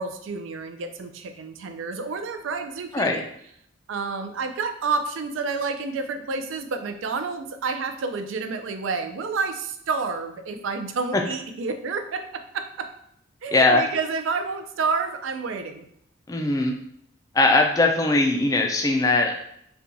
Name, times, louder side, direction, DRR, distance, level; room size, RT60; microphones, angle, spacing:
voice 1, 0.0-3.3 3.9-12.9 13.4-15.9, right 4 dB, 85° right, 7 dB, 0.4 m, -29 dB
voice 2, 13.5-13.8 16.3-16.8 17.3-19.3, left 2 dB, 15° left, 3 dB, 0.3 m, -20 dB
4.2 x 2.3 x 2.6 m, 0.71 s
head